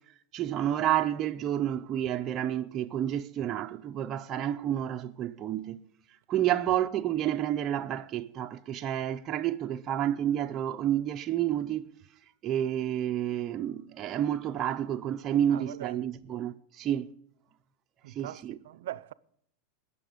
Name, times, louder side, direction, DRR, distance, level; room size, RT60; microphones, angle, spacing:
voice 1, 0.3-5.8 6.3-11.8 12.4-17.1 18.1-18.6, right 11 dB, 30° right, 0.5 m, -30 dB
voice 2, 15.5-16.0 18.0-19.1, right 13 dB, 75° right, 0.5 m, -41 dB
19.5 x 6.9 x 5.1 m
supercardioid pair, 150°, 0 cm